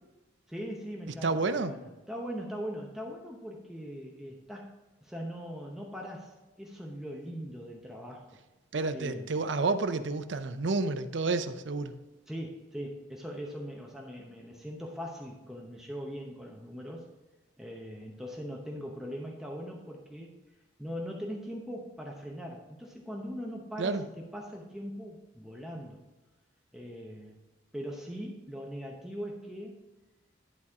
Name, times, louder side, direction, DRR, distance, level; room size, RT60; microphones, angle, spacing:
voice 1, 0.5-1.8 2.1-4.7 5.0-8.4 8.9-9.3 12.3-17.1 17.6-20.3 20.8-26.0 26.7-27.4 27.7-29.8, equal, ahead, -1 dB, 0.8 m, -40 dB
voice 2, 1.2-1.7 8.7-11.9 23.8-24.0, right 3 dB, 70° right, 10 dB, 0.6 m, -30 dB
11.0 x 4.2 x 4.9 m, 1.1 s
head